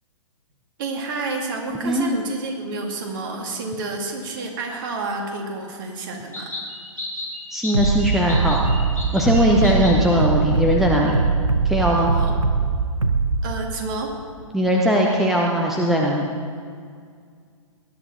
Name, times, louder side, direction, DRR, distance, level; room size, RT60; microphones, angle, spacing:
voice 1, 0.8-6.5 9.6-9.8 12.1-12.3 13.4-14.1, right 3 dB, 40° right, 2 dB, 2.1 m, -29 dB
sound 1, 6.3-10.2, left 1 dB, 80° left, 2.5 m, -34 dB
voice 2, 7.5-8.7 9.1-11.2 11.6-12.1 14.5-16.3, equal, ahead, -1 dB, 0.9 m, -19 dB
Bass drum, 7.7-13.4, right 4 dB, 80° right, 1.0 m, -21 dB
19.0 x 11.5 x 4.1 m, 2.1 s
figure-of-eight pair, 120°, 17 cm